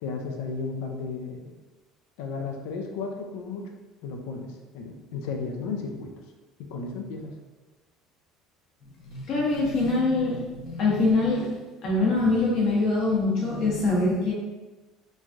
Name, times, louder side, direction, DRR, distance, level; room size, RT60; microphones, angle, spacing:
voice 1, 0.0-1.5 2.2-3.7 4.0-6.1 6.6-7.3, left 4 dB, 90° left, 3 dB, 0.4 m, -34 dB
voice 2, 9.0-11.5 11.8-14.3, left 3 dB, 50° left, -4 dB, 0.9 m, -24 dB
3.1 x 2.3 x 2.5 m, 1.2 s
cardioid pair, 160°, 0 cm